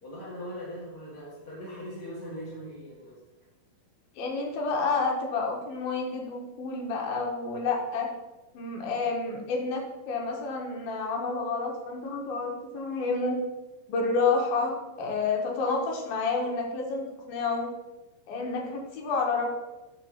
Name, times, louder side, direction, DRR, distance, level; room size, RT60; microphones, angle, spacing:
voice 1, 0.0-3.2, equal, 35° left, -8 dB, 1.7 m, -40 dB
voice 2, 4.2-8.1 8.5-13.4 13.9-17.7 18.3-19.6, left 4 dB, 75° left, 0 dB, 3.1 m, -29 dB
11.5 x 3.9 x 5.7 m, 1.1 s
omnidirectional pair, 4.3 m